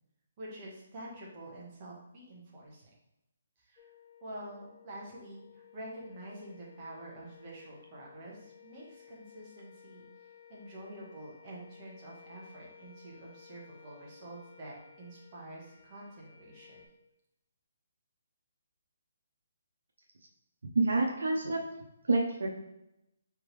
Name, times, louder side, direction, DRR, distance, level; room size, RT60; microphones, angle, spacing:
voice 1, 0.4-2.8 3.6-3.9 4.2-16.8, right 1 dB, 30° right, -4 dB, 1.5 m, -47 dB
sound 1, 3.8-16.9, left 8 dB, 15° left, 0.9 m, -57 dB
voice 2, 20.7-21.6 22.1-22.5, right 3 dB, 85° right, 1 dB, 0.7 m, -27 dB
4.5 x 3.6 x 3.3 m, 0.86 s
hypercardioid pair, 160°, 0 cm